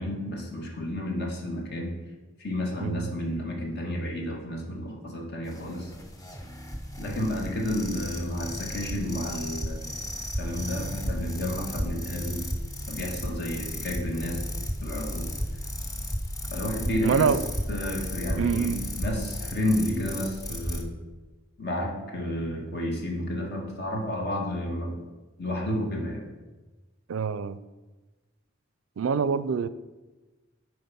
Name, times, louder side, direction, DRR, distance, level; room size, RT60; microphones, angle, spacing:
voice 1, 0.0-2.0 2.4-5.9 7.0-10.0 10.3-12.4 12.9-14.4 14.8-15.3 16.5-17.4 17.7-20.9 21.6-25.0 25.4-26.2, left 1 dB, 55° left, 1.6 m, -31 dB
voice 2, 2.8-3.1 17.0-17.4 18.4-18.8 22.5-22.6 27.1-27.6 29.0-29.7, right 6 dB, 90° right, 0.4 m, -25 dB
sound 1, 5.4-20.8, equal, 20° left, 0.8 m, -34 dB
7.9 x 4.8 x 5.5 m
head